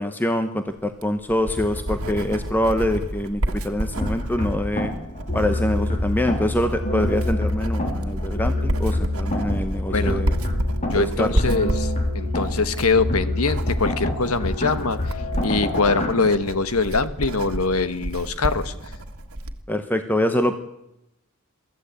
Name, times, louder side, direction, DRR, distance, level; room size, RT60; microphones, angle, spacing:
voice 1, 0.0-4.9 5.3-10.4 10.9-11.3 19.7-20.5, left 1 dB, 10° left, 7 dB, 0.9 m, -25 dB
Writing, 0.8-19.6, right 1 dB, 85° right, 1.8 m, -30 dB
sound 1, 4.0-16.1, left 1 dB, 30° left, 3.6 m, -26 dB
voice 2, 9.9-10.3 10.9-15.1 15.4-18.7, left 4 dB, 85° left, 12 dB, 1.4 m, -23 dB
23.5 x 14.5 x 8.4 m, 0.87 s
head